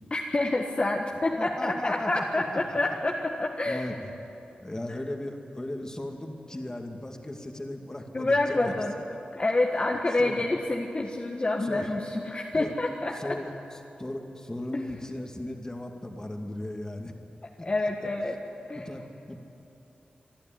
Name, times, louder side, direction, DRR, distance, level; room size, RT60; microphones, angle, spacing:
voice 1, 0.1-3.9 8.1-8.9 9.3-13.4 14.7-14.8 17.6-18.4 18.7-18.9, left 2 dB, 35° left, 0 dB, 1.5 m, -27 dB
voice 2, 1.3-2.8 3.7-3.9 4.6-8.8 10.2-10.4 11.6-11.9 12.5-12.7 13.1-13.5 14.0-17.2 17.6-17.9 18.8-19.4, left 1 dB, 20° left, 3 dB, 2.3 m, -36 dB
24.5 x 12.0 x 9.4 m, 2.8 s
cardioid pair, 60°, 3 cm